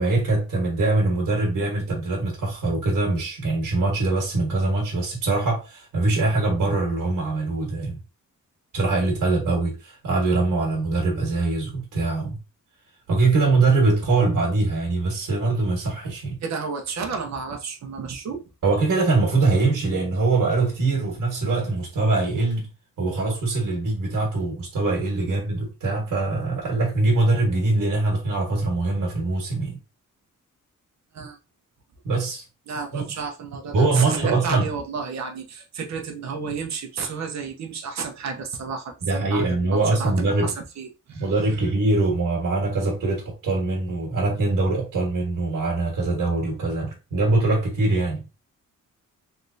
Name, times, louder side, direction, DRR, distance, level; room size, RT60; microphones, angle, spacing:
voice 1, 0.0-8.0 8.7-12.4 13.1-16.4 18.6-22.7 23.0-29.7 32.0-32.4 32.9-33.0 33.7-34.7 39.0-40.5 41.1-48.2, right 3 dB, 70° right, 1.4 m, -23 dB
voice 2, 16.4-18.4 31.1-31.4 32.7-41.3, right 5 dB, 55° right, 0.8 m, -32 dB
3.3 x 3.2 x 2.6 m
wide cardioid pair, 170°, 32 cm